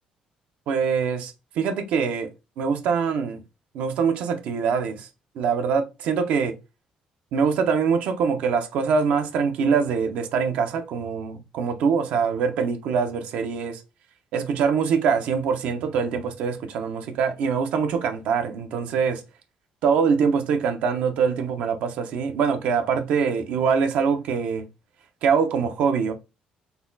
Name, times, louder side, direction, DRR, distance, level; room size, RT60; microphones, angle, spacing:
voice 1, 0.7-2.3 2.6-3.4 3.7-5.1 5.4-6.5 7.3-13.8 14.3-19.2 19.8-24.6 25.2-26.1, right 6 dB, 75° right, 0.7 m, -24 dB
4.1 x 2.3 x 3.9 m
cardioid pair, 160°, 2 cm